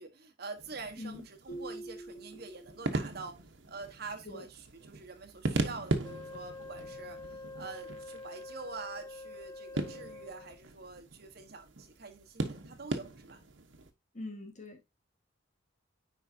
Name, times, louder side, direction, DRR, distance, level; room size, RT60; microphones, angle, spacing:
voice 1, 0.0-13.4, right 4 dB, 55° right, 1.4 m, -46 dB
sound 1, 0.6-13.9, right 2 dB, 85° right, 1.2 m, -39 dB
sound 2, 1.5-3.2, right 2 dB, 80° left, 2.3 m, -45 dB
Wind instrument woodwind instrument, 6.0-10.6, left 3 dB, 15° left, 0.5 m, -46 dB
voice 2, 14.1-14.9, left 2 dB, 40° left, 1.6 m, -43 dB
9.5 x 4.8 x 2.8 m
head